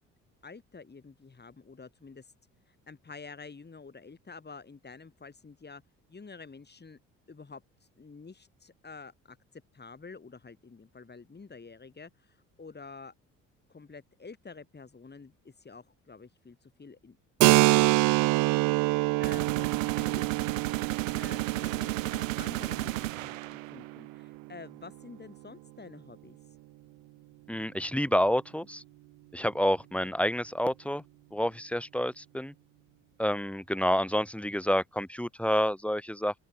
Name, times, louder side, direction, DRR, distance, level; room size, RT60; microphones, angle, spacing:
voice 1, 0.4-2.3 2.9-5.8 6.1-7.0 7.3-7.6 8.0-13.1 13.7-17.2 17.7-20.2 20.7-20.9 21.2-26.4 30.0-30.1, left 4 dB, 25° left, 5.6 m, -49 dB
Keyboard (musical), 17.4-24.8, right 22 dB, 55° right, 0.4 m, -27 dB
sound 1, 19.2-24.0, right 16 dB, 90° right, 0.8 m, -33 dB
voice 2, 27.5-28.8 29.3-31.0 31.3-32.5 33.2-36.3, equal, 5° left, 2.5 m, -28 dB
open air
hypercardioid pair, 55°, 38 cm